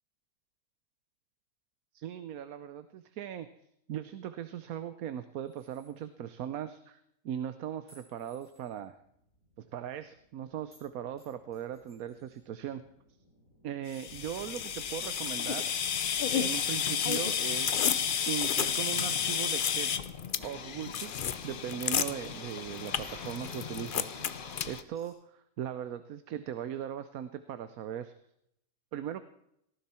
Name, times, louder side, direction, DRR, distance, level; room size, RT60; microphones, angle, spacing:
voice 1, 1.9-3.5 3.9-7.0 7.2-9.0 9.6-12.8 13.6-15.6 16.3-19.9 20.4-24.1 24.6-28.1 28.9-29.2, right 10 dB, 85° right, 11 dB, 1.2 m, -39 dB
sound 1, 5.5-5.9 7.9-8.8 10.7-10.9 11.2-12.4 13.9-14.9 16.3-17.5 18.5-19.6 20.0-20.2 21.0-21.2 21.4-22.3 23.0-23.2 23.5-24.2 24.9-25.1, right 1 dB, 10° right, 8.0 m, -61 dB
sound 2, 8.5-24.6, left 1 dB, 75° left, 3.9 m, -56 dB
sound 3, 13.9-24.8, left 8 dB, 50° left, 0.7 m, -31 dB
18.5 x 14.5 x 4.3 m, 0.75 s
omnidirectional pair, 1.5 m